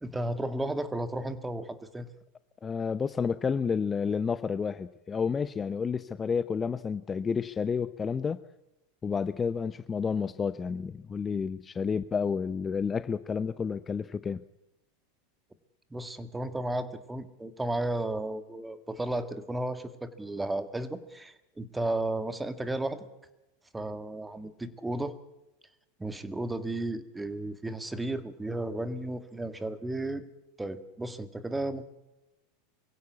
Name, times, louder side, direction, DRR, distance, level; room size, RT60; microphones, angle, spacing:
voice 1, 0.0-2.1 15.9-23.0 23.7-25.1 26.0-30.2 30.6-31.8, right 1 dB, 10° right, 11 dB, 1.9 m, -34 dB
voice 2, 2.6-8.4 9.0-14.4, left 6 dB, 25° left, 14 dB, 0.7 m, -30 dB
23.5 x 16.0 x 8.4 m, 0.94 s
hypercardioid pair, 95°, 0 cm